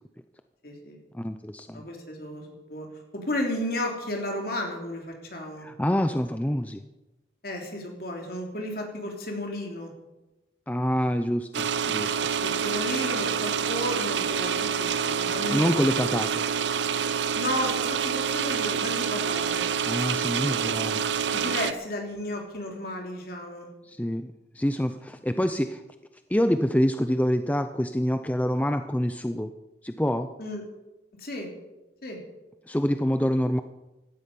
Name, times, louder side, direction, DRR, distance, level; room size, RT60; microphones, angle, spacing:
voice 1, 0.6-1.0 1.7-2.9 3.1-5.7 7.4-9.9 12.4-15.9 17.1-19.7 21.3-23.7 30.4-30.6 31.2-31.5 32.0-32.2, left 1 dB, 55° left, 1 dB, 3.3 m, -33 dB
voice 2, 1.1-1.8 5.6-6.8 10.7-12.3 15.5-16.4 19.8-21.1 23.8-25.8 26.3-29.5 29.8-30.3 32.7-33.6, equal, 10° left, 8 dB, 0.5 m, -26 dB
sound 1, 11.5-21.7, right 7 dB, 80° right, 0.6 m, -27 dB
17.0 x 12.5 x 5.4 m, 1.0 s
head